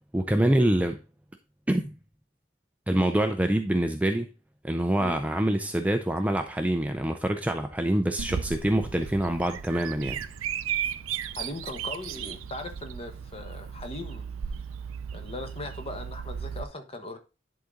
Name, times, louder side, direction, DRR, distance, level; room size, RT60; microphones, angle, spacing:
voice 1, 0.1-1.0 1.7-1.9 2.9-4.3 4.6-10.2, right 1 dB, 5° right, 0.4 m, -25 dB
Bird vocalization bird call bird song, 8.2-16.6, right 8 dB, 85° right, 0.5 m, -35 dB
voice 2, 11.3-14.3 15.1-17.2, left 2 dB, 30° left, 1.2 m, -39 dB
10.5 x 4.0 x 3.7 m
head